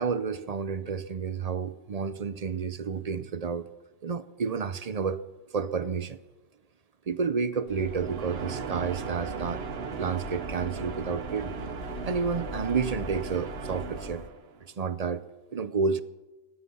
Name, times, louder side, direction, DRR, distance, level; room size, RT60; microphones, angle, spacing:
voice 1, 0.0-3.7 4.0-5.2 5.5-6.2 7.1-9.7 10.0-11.5 12.1-14.2 14.8-15.2 15.5-16.0, right 5 dB, 45° right, 0.7 m, -30 dB
sound 1, 7.7-14.3, left 6 dB, 70° left, 1.0 m, -43 dB
sound 2, 7.8-14.6, right 6 dB, 75° right, 1.1 m, -37 dB
16.0 x 9.9 x 7.1 m
omnidirectional pair, 1.1 m